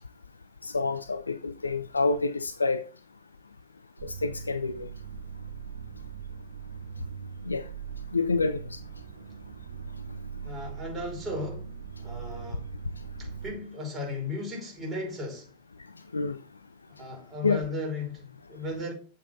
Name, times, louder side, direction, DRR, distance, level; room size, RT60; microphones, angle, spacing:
voice 1, 0.6-2.8 4.0-4.9 7.5-7.6 8.1-8.6 16.1-16.4 17.4-17.6, left 3 dB, 80° left, 0.5 m, -27 dB
sound 1, 4.0-13.5, right 6 dB, 65° right, 1.0 m, -41 dB
voice 2, 10.4-11.7 12.0-12.7 13.2-15.5 17.0-18.9, left 2 dB, 15° right, 5.5 m, -35 dB
8.5 x 7.8 x 3.9 m
figure-of-eight pair, 90°, 0 cm